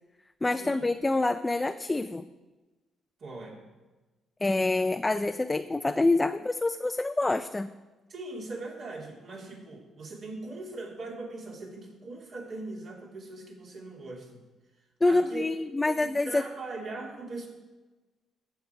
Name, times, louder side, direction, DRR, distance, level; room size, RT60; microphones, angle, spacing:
voice 1, 0.4-2.3 4.4-7.7 15.0-16.4, left 2 dB, 20° left, 9 dB, 0.4 m, -26 dB
voice 2, 3.2-3.6 8.1-14.4 15.0-15.5 15.9-16.0 16.2-17.5, right 2 dB, 60° right, -2 dB, 3.0 m, -40 dB
15.0 x 6.6 x 4.7 m, 1.2 s
cardioid pair, 90°, 0 cm